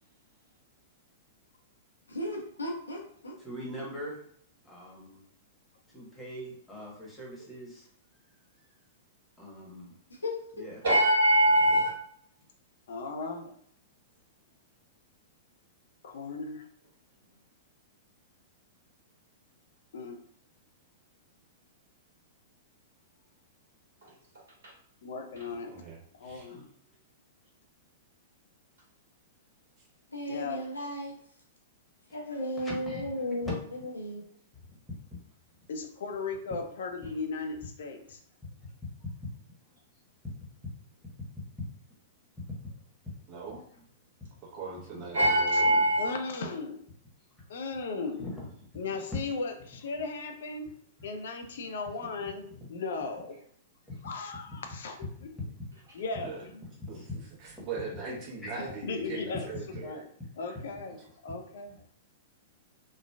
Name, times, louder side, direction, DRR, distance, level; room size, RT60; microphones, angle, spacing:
voice 1, 2.1-3.4 10.1-10.7 30.1-31.1 32.1-34.2 48.0-48.1, left 1 dB, 85° left, -1 dB, 0.7 m, -35 dB
voice 2, 3.4-4.2 4.6-5.2 5.9-7.9 9.4-9.9 10.5-10.8 26.5-26.7 32.6-33.2 34.6-35.0 38.4-38.7 39.0-39.1 40.6-40.7 42.5-42.6 43.0-43.1 48.2-48.3 48.9-49.0 51.0-51.1 51.7-51.8 52.2-52.6 53.9-54.0 56.9-57.0 58.4-58.8 59.7-59.8 60.9-61.1, left 1 dB, 10° left, -5 dB, 1.1 m, -42 dB
voice 3, 10.8-11.9 24.6-24.7 45.1-46.2, right 1 dB, 60° right, -5 dB, 1.4 m, -22 dB
voice 4, 12.9-13.5 16.0-16.7 19.9-20.2 25.0-25.7 26.2-26.6 30.3-30.6 35.7-38.2 45.5-45.6 46.0-46.8 47.5-48.2 48.8-50.7 51.0-53.4 54.0-55.0 55.2-55.3 55.9-56.6 58.8-59.5 59.8-60.0 60.4-61.0 61.2-61.8, left 4 dB, 60° left, 6 dB, 0.4 m, -36 dB
voice 5, 25.4-26.6 43.3-43.6 44.4-45.8 49.0-49.1 56.2-56.4 56.9-57.1 57.4-60.0 60.5-60.6, right 4 dB, 35° right, -4 dB, 1.0 m, -41 dB
3.1 x 2.2 x 2.3 m, 0.63 s
figure-of-eight pair, 105°, 0 cm